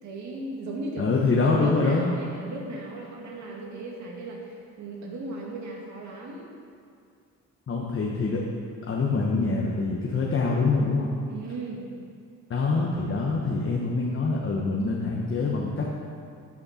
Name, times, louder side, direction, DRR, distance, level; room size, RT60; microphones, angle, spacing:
voice 1, 0.0-1.1 1.4-6.5 11.3-11.9, right 2 dB, 70° right, -2 dB, 2.2 m, -36 dB
voice 2, 1.0-2.1 7.7-8.4 8.9-11.1 12.5-15.9, left 3 dB, 45° left, -3 dB, 1.2 m, -25 dB
13.5 x 6.5 x 4.3 m, 2.3 s
cardioid pair, 90°, 30 cm